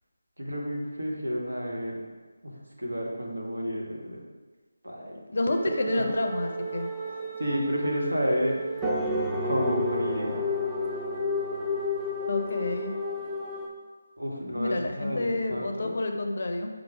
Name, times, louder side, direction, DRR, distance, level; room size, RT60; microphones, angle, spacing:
voice 1, 0.4-2.0 2.4-2.5 2.8-4.2 4.8-5.2 6.0-6.1 7.4-8.6 9.4-10.4 14.2-15.9, equal, 85° right, -2 dB, 0.9 m, -30 dB
voice 2, 5.3-6.9 12.3-12.9 14.5-16.7, left 2 dB, 55° left, 4 dB, 0.5 m, -29 dB
sound 1, 5.5-13.7, left 1 dB, 5° right, 0.4 m, -31 dB
4.6 x 2.0 x 4.6 m, 1.3 s
figure-of-eight pair, 160°, 0 cm